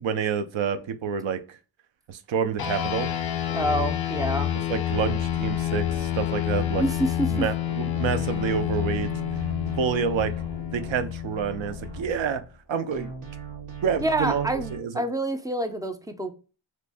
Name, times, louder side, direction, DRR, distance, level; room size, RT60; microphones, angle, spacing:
voice 1, 0.0-1.6 2.1-3.1 4.7-6.8 7.3-9.1 9.8-10.3 10.7-12.4 12.7-13.1 13.8-15.0, right 7 dB, 65° right, 10 dB, 0.6 m, -28 dB
sound 1, 2.6-12.3, left 11 dB, 45° left, 0.7 m, -28 dB
voice 2, 3.5-4.5 6.7-7.3 14.0-16.3, right 1 dB, 10° right, 6 dB, 0.3 m, -27 dB
sound 2, 4.9-7.7 8.0-12.6 12.9-14.8, right 4 dB, 90° right, 1.2 m, -40 dB
3.0 x 2.6 x 3.3 m, 0.34 s
wide cardioid pair, 100°, 50 cm